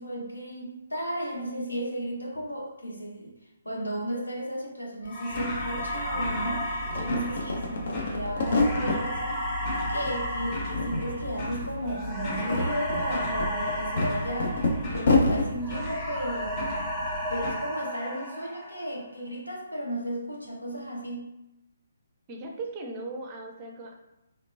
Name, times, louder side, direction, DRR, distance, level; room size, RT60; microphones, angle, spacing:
voice 1, 0.0-3.4 3.6-9.4 9.9-16.7 17.3-21.3, equal, 80° left, -1 dB, 0.8 m, -34 dB
sound 1, 5.0-5.1 5.3-6.5 6.8-9.0 9.4-10.2 10.4-11.3 11.6-11.7 12.2-15.5, left 2 dB, 50° left, 0.5 m, -27 dB
sound 2, 5.1-15.3 15.6-19.0, equal, 10° left, 0.7 m, -34 dB
sound 3, 5.3-17.5, left 1 dB, 30° left, 1.1 m, -37 dB
voice 2, 22.3-23.9, right 2 dB, 25° right, 2 dB, 0.5 m, -38 dB
3.2 x 2.9 x 2.6 m, 0.91 s
figure-of-eight pair, 135°, 0 cm